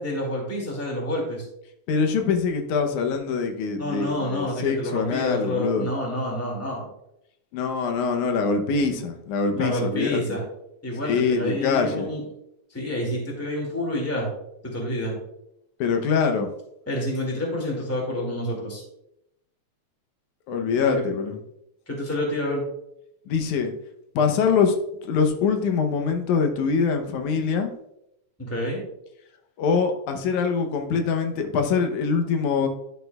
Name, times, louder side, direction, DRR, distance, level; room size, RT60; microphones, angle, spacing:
voice 1, 0.0-1.4 3.8-6.8 9.5-10.4 10.8-12.2 12.7-14.3 14.6-15.1 16.9-18.8 20.8-21.1 21.9-22.6 28.4-28.8, left 1 dB, 5° left, -2 dB, 1.7 m, -28 dB
voice 2, 1.9-5.9 7.5-10.4 11.0-12.1 15.8-16.5 20.5-21.4 23.3-23.7 24.2-24.8 25.1-27.7 29.6-32.7, left 5 dB, 90° left, 5 dB, 2.3 m, -24 dB
11.0 x 6.7 x 2.3 m, 0.80 s
omnidirectional pair, 3.3 m